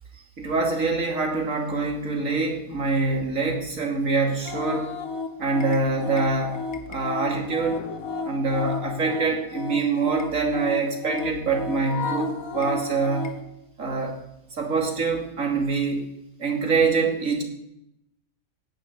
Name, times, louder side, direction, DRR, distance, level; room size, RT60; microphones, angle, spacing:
voice 1, 0.4-4.9 5.4-6.6 6.9-7.9 8.2-13.3 13.8-14.2 14.5-16.1 16.4-17.4, right 4 dB, 65° right, 2 dB, 3.1 m, -25 dB
sound 1, 4.4-13.4, left 4 dB, 75° left, 1.7 m, -33 dB
16.5 x 10.0 x 8.5 m, 0.85 s
omnidirectional pair, 1.5 m